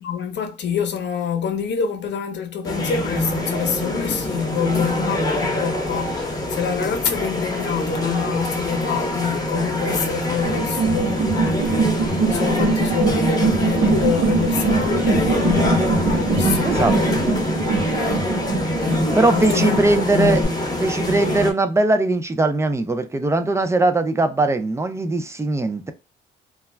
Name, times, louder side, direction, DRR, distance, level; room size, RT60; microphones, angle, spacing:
voice 1, 0.0-18.3 18.8-19.8 20.1-20.6, left 7 dB, 65° left, 0.7 m, -26 dB
sound 1, 2.6-21.5, left 1 dB, 20° left, 0.9 m, -25 dB
sound 2, 10.4-20.4, right 4 dB, 85° right, 0.8 m, -23 dB
voice 2, 19.2-20.4 20.8-25.9, right 2 dB, 15° right, 0.4 m, -20 dB
2.3 x 2.0 x 3.2 m
cardioid pair, 90°, 20 cm